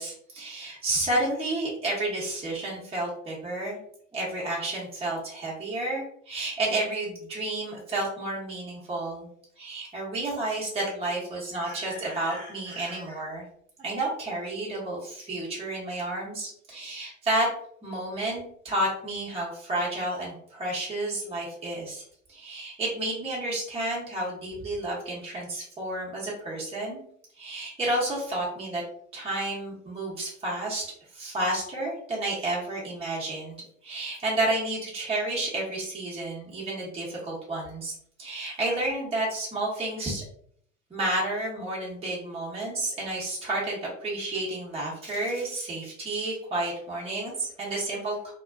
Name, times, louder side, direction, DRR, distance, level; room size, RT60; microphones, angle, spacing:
voice 1, 0.0-3.8 4.1-9.3 9.6-13.4 13.8-17.5 17.8-22.0 22.3-27.0 27.4-28.8 29.1-30.8 31.1-37.9 38.2-40.2 40.9-48.3, right 1 dB, 15° right, -5 dB, 0.9 m, -31 dB
2.4 x 2.2 x 2.2 m, 0.64 s
hypercardioid pair, 85°, 41 cm